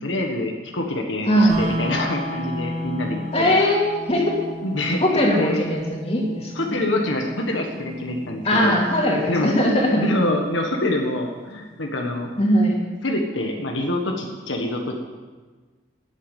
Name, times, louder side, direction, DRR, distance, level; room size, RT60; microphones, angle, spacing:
voice 1, 0.0-3.5 4.6-5.7 6.5-8.8 9.3-9.6 10.0-12.3 13.0-15.0, left 1 dB, 85° left, 2 dB, 1.6 m, -26 dB
voice 2, 1.3-1.6 3.3-4.4 5.0-6.8 8.4-10.0 12.4-12.8, equal, 30° left, -2 dB, 2.9 m, -20 dB
sound 1, 1.5-11.5, equal, 35° right, 3.0 m, -34 dB
12.5 x 8.8 x 9.1 m, 1.4 s
head